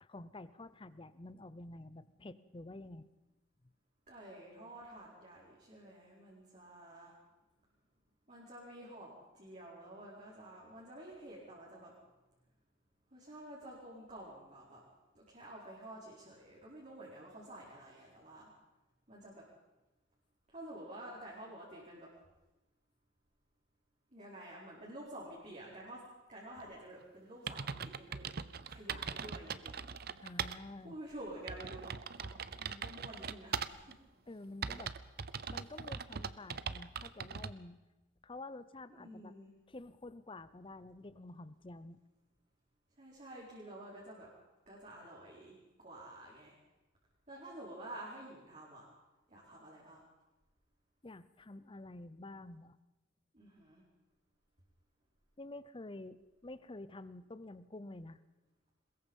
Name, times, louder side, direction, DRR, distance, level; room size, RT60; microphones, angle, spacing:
voice 1, 0.0-3.1 30.2-31.0 34.3-34.9 35.5-37.8 38.2-39.3 39.7-42.0 51.0-52.8 55.4-58.2, left 2 dB, 25° left, 15 dB, 0.7 m, -49 dB
voice 2, 4.1-7.1 8.3-11.9 13.1-14.8 15.1-18.5 19.1-19.4 20.5-22.1 24.1-26.0 26.3-28.3 28.6-29.8 30.8-31.9 32.2-34.0 39.0-39.5 43.0-44.3 44.7-46.6 47.3-48.9 49.3-50.0 53.3-53.8, right 1 dB, 35° right, -5 dB, 4.5 m, -50 dB
sound 1, 27.0-27.1 27.5-30.6 31.0-31.1 31.5-33.9 34.6-37.5, right 6 dB, 50° right, 0.7 m, -41 dB
22.5 x 21.0 x 5.5 m, 1.1 s
head